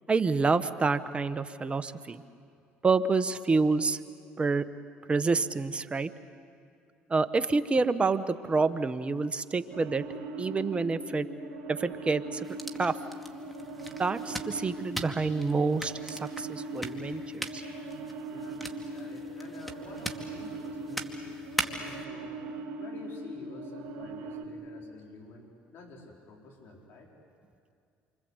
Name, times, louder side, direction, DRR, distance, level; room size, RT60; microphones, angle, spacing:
voice 1, 0.1-2.2 2.8-4.0 4.4-4.7 5.1-6.1 7.1-10.0 10.4-11.3 11.7-12.5 12.8-13.0 14.0-17.6, right 4 dB, 25° right, 11 dB, 1.2 m, -28 dB
sound 1, 9.7-24.4, right 2 dB, 75° right, 2.2 m, -40 dB
sound 2, 12.4-22.0, right 1 dB, ahead, 2.3 m, -41 dB
voice 2, 18.3-21.2 21.6-22.4 22.8-27.1, left 3 dB, 60° left, 0 dB, 4.7 m, -49 dB
28.0 x 25.5 x 8.2 m, 2.4 s
supercardioid pair, 80°, 4 cm